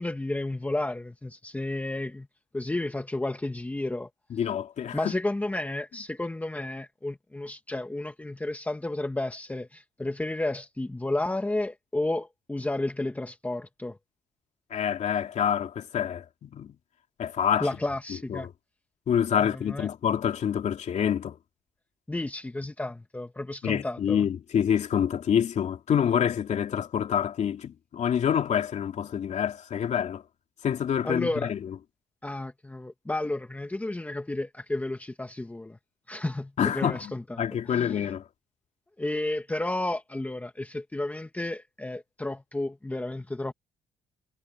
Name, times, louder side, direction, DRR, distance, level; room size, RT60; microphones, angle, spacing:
voice 1, 0.0-2.3 2.5-4.1 4.9-14.0 17.6-18.5 19.4-19.9 22.1-24.3 31.0-31.5 32.2-35.8 36.1-38.1 39.0-43.5, left 2 dB, 10° left, 1.5 m, -32 dB
voice 2, 4.3-5.1 14.7-16.7 17.2-17.7 18.3-18.5 19.1-21.4 23.6-30.2 30.6-31.6 36.6-38.2, left 8 dB, 55° left, 2.7 m, -27 dB
cardioid pair, 105°, 14 cm